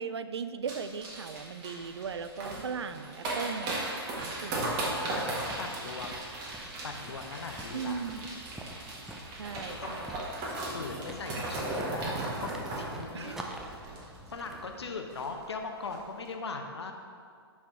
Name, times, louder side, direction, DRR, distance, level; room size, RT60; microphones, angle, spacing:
voice 1, 0.0-3.8 4.2-4.7 7.7-8.2 9.4-10.2 13.1-13.5, right 6 dB, 75° right, 11 dB, 0.4 m, -38 dB
sound 1, 0.7-14.5 14.8-14.9 15.1-15.4 15.8-16.0, right 2 dB, 30° right, 1.4 m, -37 dB
sound 2, 4.1-14.9, right 1 dB, 5° right, 0.4 m, -47 dB
voice 2, 4.4-4.7 5.1-6.2 6.8-8.0 8.6-9.0 9.7-12.5 12.8-13.4 14.3-16.9, left 4 dB, 75° left, 4 dB, 0.8 m, -40 dB
5.8 x 4.5 x 4.6 m, 2.1 s
figure-of-eight pair, 125°, 14 cm